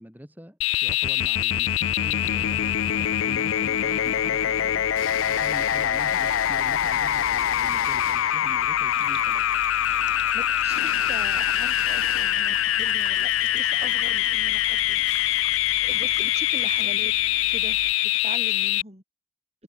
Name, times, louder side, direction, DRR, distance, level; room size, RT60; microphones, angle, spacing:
voice 1, 0.0-9.5, equal, 10° right, 3.7 m, -44 dB
sound 1, 0.6-18.8, left 12 dB, 75° left, 0.4 m, -24 dB
sound 2, 2.2-17.9, left 7 dB, 90° left, 0.9 m, -39 dB
sound 3, 8.9-16.8, right 7 dB, 60° right, 4.0 m, -44 dB
voice 2, 10.3-15.0 15.8-17.1 17.5-19.0, right 2 dB, 30° right, 6.3 m, -41 dB
head